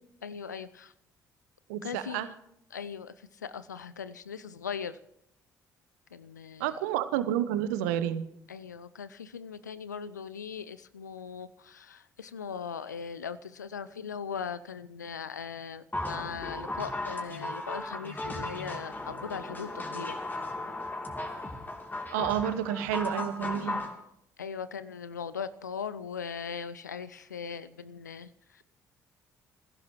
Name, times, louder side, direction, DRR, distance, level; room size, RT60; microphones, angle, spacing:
voice 1, 0.2-0.9 1.8-2.3 2.7-5.0 6.1-6.8 8.5-20.2 24.4-28.6, left 6 dB, 85° left, 15 dB, 0.5 m, -39 dB
voice 2, 1.7-2.3 6.6-8.2 22.1-23.8, right 11 dB, 70° right, 13 dB, 0.9 m, -30 dB
sound 1, 15.9-23.9, left 2 dB, 20° left, 3.0 m, -36 dB
26.5 x 16.0 x 3.1 m, 0.74 s
figure-of-eight pair, 50°, 9 cm